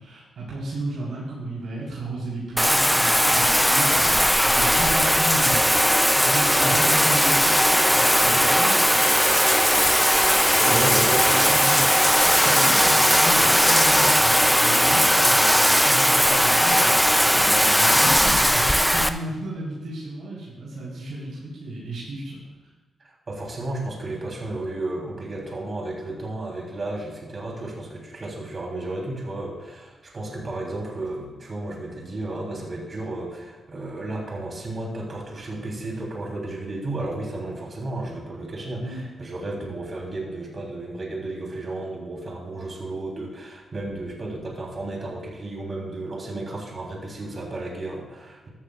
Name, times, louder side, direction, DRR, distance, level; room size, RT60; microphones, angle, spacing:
voice 1, 0.0-5.7 6.1-9.5 10.5-22.4 38.8-39.1, right 1 dB, 80° right, -8 dB, 4.1 m, -33 dB
Bathtub (filling or washing), 2.6-19.1, equal, ahead, 0.5 m, -18 dB
sound 1, 3.5-17.8, left 1 dB, 20° left, 1.5 m, -37 dB
voice 2, 10.7-11.5 23.0-48.5, right 2 dB, 40° right, -2 dB, 3.5 m, -33 dB
14.5 x 13.0 x 2.5 m, 1.2 s
cardioid pair, 105°, 0 cm